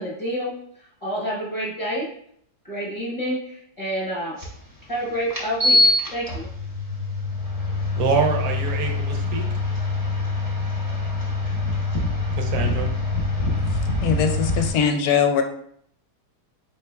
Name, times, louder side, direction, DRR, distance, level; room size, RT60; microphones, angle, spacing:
voice 1, 0.0-2.1 2.6-4.4 4.9-5.8 6.1-6.5, equal, 25° left, -7 dB, 1.0 m, -28 dB
sound 1, 4.4-4.5 5.3-14.7, left 2 dB, 20° right, 0.5 m, -24 dB
voice 2, 8.0-9.5 12.4-12.9, right 5 dB, 70° right, 3 dB, 1.1 m, -25 dB
voice 3, 14.0-15.4, left 7 dB, 75° left, 6 dB, 1.0 m, -21 dB
4.5 x 3.2 x 2.2 m, 0.66 s
omnidirectional pair, 1.7 m